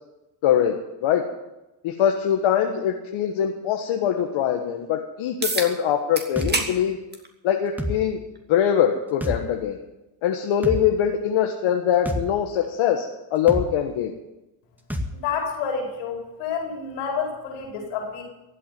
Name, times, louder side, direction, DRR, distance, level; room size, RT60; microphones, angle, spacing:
voice 1, 0.4-0.7 1.0-1.2 1.8-7.0 7.4-8.2 8.5-9.8 10.2-14.1, left 9 dB, 70° left, 2 dB, 1.6 m, -22 dB
sound 1, 5.4-5.7 6.2-6.7 7.1-7.3 8.4-8.5 13.4-13.5, right 2 dB, 20° right, 2.5 m, -26 dB
sound 2, 6.4-6.5 7.8-8.0 9.2-9.4 10.6-10.8 12.0-12.2 13.5-13.7 14.9-15.1, left 1 dB, 5° right, 2.1 m, -27 dB
voice 2, 15.1-18.2, left 6 dB, 85° left, 1 dB, 4.8 m, -29 dB
15.0 x 8.6 x 9.3 m, 0.97 s
supercardioid pair, 75°, 49 cm